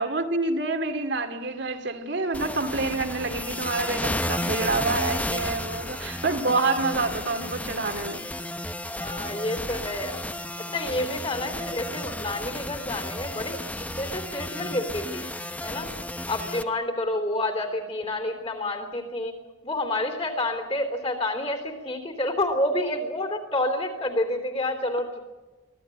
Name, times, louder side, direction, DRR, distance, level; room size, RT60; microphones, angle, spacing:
voice 1, 0.0-8.2, right 3 dB, 60° right, 2.4 m, -27 dB
sound 1, 2.3-16.6, left 1 dB, 10° left, 0.9 m, -33 dB
voice 2, 8.9-10.2 10.6-15.3 15.6-15.9 16.2-19.4 19.6-25.2, left 1 dB, 30° left, 3.4 m, -29 dB
24.5 x 16.5 x 9.2 m
head